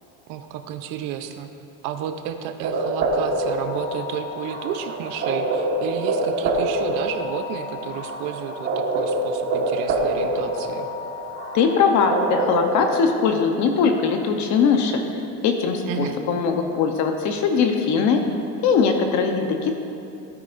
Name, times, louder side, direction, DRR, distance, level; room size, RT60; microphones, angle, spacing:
voice 1, 0.3-1.5 1.8-10.9 15.8-16.2, right 9 dB, 65° right, 7 dB, 0.8 m, -32 dB
sound 1, 2.6-12.9, right 2 dB, 40° right, 1.6 m, -26 dB
voice 2, 11.5-15.0 15.4-18.2 18.6-19.8, left 5 dB, 50° left, 4 dB, 0.9 m, -20 dB
16.5 x 9.6 x 2.6 m, 2.6 s
cardioid pair, 155°, 37 cm